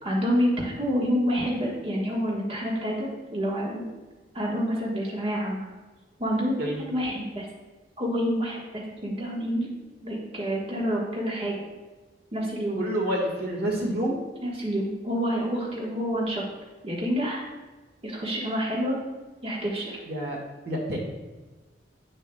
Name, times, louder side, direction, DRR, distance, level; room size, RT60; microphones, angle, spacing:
voice 1, 0.0-3.8 4.3-5.6 6.2-7.5 8.0-9.7 10.0-11.6 12.3-12.8 14.4-16.5 16.8-17.4 18.0-19.0 19.4-20.0, equal, 30° right, -4 dB, 1.3 m, -28 dB
voice 2, 12.8-14.2 20.0-20.4 20.6-21.0, equal, 60° right, -1 dB, 1.6 m, -28 dB
9.5 x 6.8 x 2.2 m, 1.2 s
head